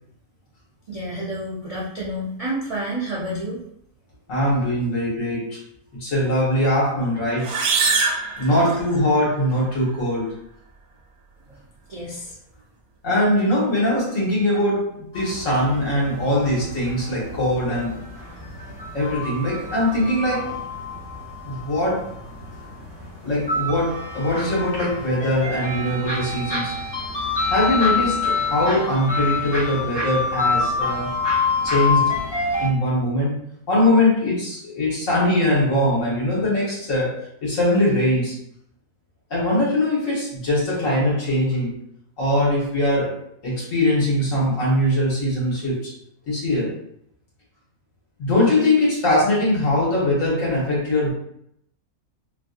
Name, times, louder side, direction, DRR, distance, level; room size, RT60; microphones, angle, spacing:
voice 1, 0.9-3.6 8.4-8.6 11.9-12.3, right 1 dB, 50° right, -7 dB, 0.4 m, -29 dB
voice 2, 4.3-5.6 6.0-7.6 8.4-10.3 13.0-18.0 18.9-20.6 21.4-22.1 23.2-26.7 27.5-31.2 31.6-32.2 32.6-33.4 33.7-38.4 39.3-41.7 42.2-43.1 43.4-45.9 46.3-46.7 48.2-51.1, left 1 dB, 65° left, -6 dB, 1.6 m, -21 dB
sound 1, 7.4-9.2, right 4 dB, 90° right, 1.1 m, -23 dB
sound 2, 15.1-32.7, left 3 dB, 30° left, 0.5 m, -27 dB
3.1 x 2.6 x 2.4 m, 0.72 s
omnidirectional pair, 1.5 m